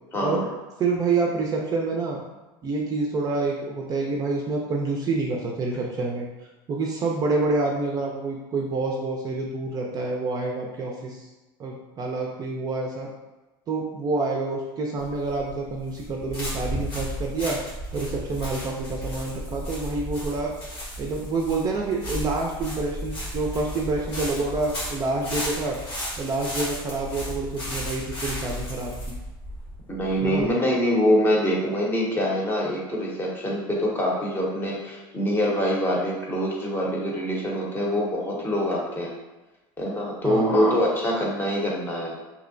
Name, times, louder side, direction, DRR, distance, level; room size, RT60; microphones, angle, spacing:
voice 1, 0.1-0.5 29.9-39.1 39.8-42.1, equal, 20° left, -3 dB, 0.7 m, -24 dB
voice 2, 0.8-2.2 2.6-6.3 6.7-11.3 11.6-13.1 13.7-17.6 17.9-20.5 21.0-25.8 26.2-28.9 30.2-30.5 40.2-40.6, right 3 dB, 35° right, -1 dB, 0.4 m, -27 dB
sound 1, 15.0-30.5, equal, 85° left, 1.2 m, -34 dB
2.7 x 2.1 x 2.5 m, 1.1 s
supercardioid pair, 110°, 12 cm